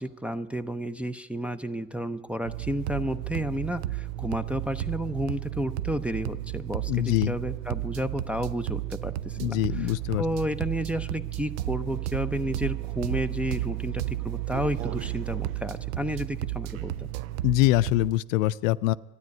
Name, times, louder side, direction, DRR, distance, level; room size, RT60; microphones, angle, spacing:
voice 1, 0.0-9.9 10.2-17.1, equal, 5° right, 6 dB, 0.5 m, -31 dB
sound 1, 2.4-18.1, right 14 dB, 70° right, 0.6 m, -33 dB
voice 2, 6.9-7.4 9.4-10.2 17.4-18.9, left 17 dB, 70° left, 17 dB, 0.5 m, -24 dB
13.0 x 9.8 x 9.3 m, 1.3 s
hypercardioid pair, 80°, 41 cm